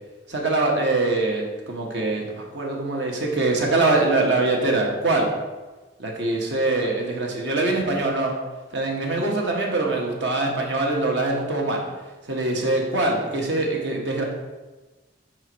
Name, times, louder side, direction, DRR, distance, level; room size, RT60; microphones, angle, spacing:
voice 1, 0.3-5.3 6.0-8.3 8.7-11.8 12.2-14.2, right 2 dB, 75° right, 0 dB, 1.2 m, -23 dB
5.1 x 4.5 x 4.5 m, 1.2 s
head